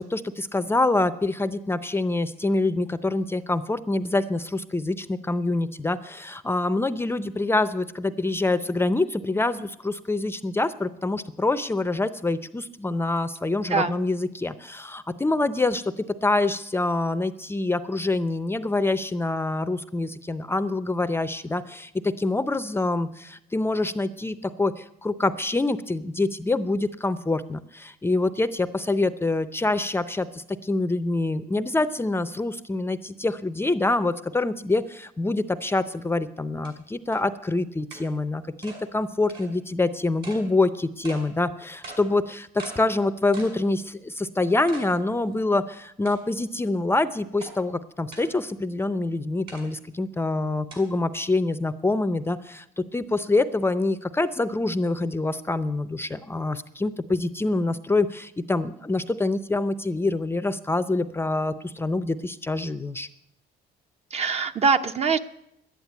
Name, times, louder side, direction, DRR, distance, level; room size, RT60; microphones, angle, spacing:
voice 1, 0.0-63.1, left 2 dB, 15° left, 12 dB, 0.5 m, -26 dB
sound 1, 35.9-36.0 36.6-36.7 37.1-37.2 37.9-38.0 38.6-38.8 39.3-39.5 40.2-40.4 41.0-41.2 41.8-42.0 42.6-42.8 43.3-43.6 44.0-44.1 44.7-44.9 45.3-45.4 46.1-46.4 47.4-47.5 48.1-48.3 49.5-49.6 50.7-50.8, right 3 dB, 65° right, 5.9 m, -41 dB
voice 2, 64.1-65.2, right 5 dB, 40° right, 9 dB, 0.8 m, -23 dB
11.5 x 9.8 x 9.3 m, 0.78 s
cardioid pair, 110°, 17 cm